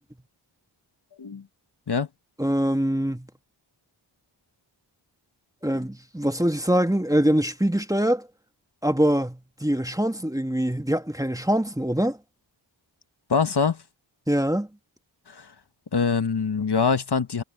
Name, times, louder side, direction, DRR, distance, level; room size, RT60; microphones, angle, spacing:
voice 1, 2.4-3.3 5.6-8.3 8.8-12.2 14.3-14.7, equal, 5° right, 1.7 m, -23 dB
voice 2, 13.3-13.8 15.3-15.5 15.9-17.4, left 5 dB, 55° left, 1.5 m, -23 dB
cardioid pair, 40°, 47 cm